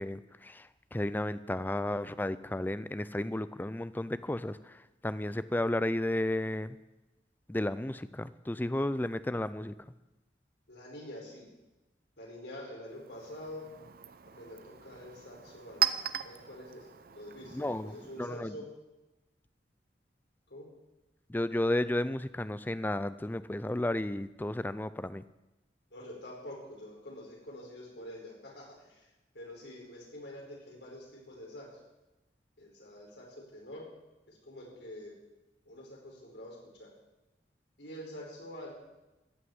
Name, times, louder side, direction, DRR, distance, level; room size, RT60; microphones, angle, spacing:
voice 1, 0.0-6.8 7.5-9.7 17.5-18.5 21.3-25.2, left 1 dB, 10° left, 15 dB, 0.4 m, -33 dB
voice 2, 10.7-11.5 12.2-13.7 14.3-18.6 20.5-20.7 25.9-29.1 29.3-31.8 32.6-33.3 33.5-33.9 34.3-35.1 35.6-36.9 37.8-38.8, left 1 dB, 75° left, -2 dB, 5.0 m, -46 dB
Chink clink, 12.9-18.4, right 9 dB, 55° right, 0.6 m, -38 dB
14.5 x 6.3 x 9.4 m, 1.0 s
head